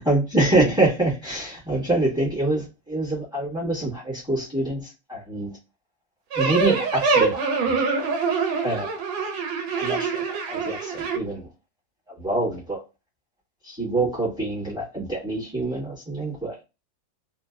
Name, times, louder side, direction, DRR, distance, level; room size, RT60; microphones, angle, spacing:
voice 1, 0.0-5.5 6.3-7.8 8.6-8.9 9.7-11.5 12.1-12.8 13.6-16.6, right 2 dB, 5° right, -5 dB, 1.0 m, -25 dB
sound 1, 6.3-11.2, right 4 dB, 90° right, 1.4 m, -24 dB
3.1 x 2.6 x 2.3 m, 0.28 s
omnidirectional pair, 2.0 m